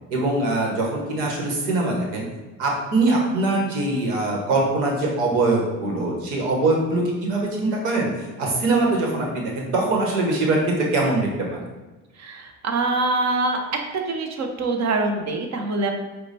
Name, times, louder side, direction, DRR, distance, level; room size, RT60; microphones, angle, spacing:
voice 1, 0.1-2.2 2.6-11.6, right 2 dB, 85° right, -1 dB, 1.2 m, -22 dB
voice 2, 12.2-13.6 13.9-15.9, right 3 dB, 45° right, 4 dB, 0.9 m, -24 dB
4.8 x 2.3 x 4.0 m, 1.2 s
hypercardioid pair, 75°, 38 cm